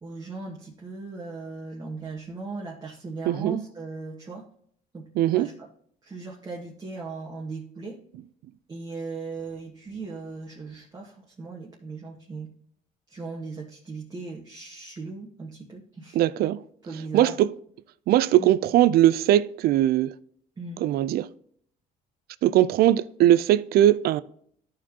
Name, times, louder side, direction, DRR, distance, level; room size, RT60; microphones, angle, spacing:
voice 1, 0.0-4.5 4.9-5.1 5.3-5.7 6.0-8.0 8.7-12.5 13.1-16.2 16.8-17.4 18.4-18.6 20.6-20.8, right 3 dB, 25° right, 1.3 m, -38 dB
voice 2, 3.3-3.6 5.2-5.5 16.2-16.6 17.1-17.5 18.1-20.1 20.8-21.3 22.4-24.2, right 13 dB, 65° right, 0.4 m, -20 dB
13.0 x 4.6 x 2.9 m
cardioid pair, 110°, 17 cm